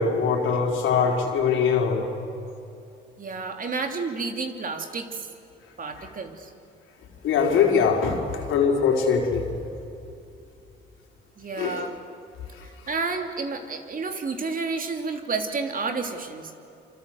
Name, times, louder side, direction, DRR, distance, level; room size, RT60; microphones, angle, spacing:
voice 1, 0.0-2.1 6.0-6.1 7.2-9.5 11.5-11.9 12.5-12.7, left 6 dB, 85° left, 1 dB, 4.5 m, -22 dB
voice 2, 3.2-5.2 5.8-6.5 11.4-11.9 12.6-16.5, right 4 dB, 45° right, 5 dB, 3.1 m, -30 dB
27.0 x 26.5 x 8.0 m, 2.7 s
cardioid pair, 90°, 20 cm